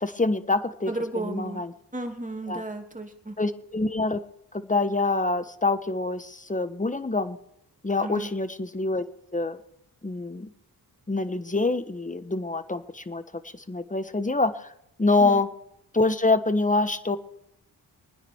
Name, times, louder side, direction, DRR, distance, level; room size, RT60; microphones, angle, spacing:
voice 1, 0.0-1.7 2.5-2.6 3.4-4.2 4.5-7.4 7.8-9.0 9.3-9.6 10.0-10.5 11.1-14.7 15.0-15.5 15.9-17.2, left 3 dB, 20° left, 11 dB, 1.3 m, -26 dB
voice 2, 0.9-1.6 1.9-3.4 8.0-8.3 15.2-15.4, right 2 dB, 20° right, 3 dB, 2.9 m, -33 dB
24.5 x 9.9 x 4.7 m, 0.77 s
cardioid pair, 75°, 40 cm